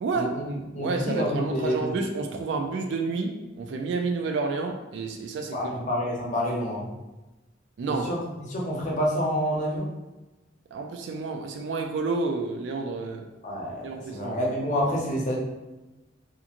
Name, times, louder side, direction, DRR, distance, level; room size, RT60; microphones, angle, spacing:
voice 1, 0.0-5.7 7.8-8.1 10.7-13.3 13.8-14.4, right 3 dB, 70° right, 3 dB, 0.3 m, -30 dB
voice 2, 0.7-2.0 5.5-6.9 7.9-8.2 8.5-9.9 13.4-15.4, equal, 40° left, -3 dB, 0.7 m, -28 dB
2.9 x 2.5 x 2.4 m, 1.1 s
head